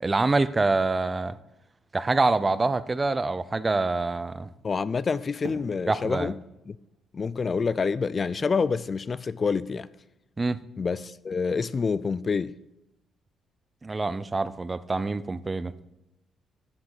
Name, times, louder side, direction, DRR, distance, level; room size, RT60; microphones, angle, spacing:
voice 1, 0.0-1.4 1.9-4.5 5.9-6.3 10.4-10.6 13.8-15.7, right 3 dB, 25° right, 0.5 m, -25 dB
voice 2, 4.6-6.4 6.7-6.8 7.1-9.9 10.8-12.6, left 5 dB, 40° left, 0.3 m, -27 dB
Fireworks, 5.4-8.5, right 4 dB, 80° right, 2.2 m, -46 dB
9.9 x 6.0 x 7.1 m
cardioid pair, 90°, 0 cm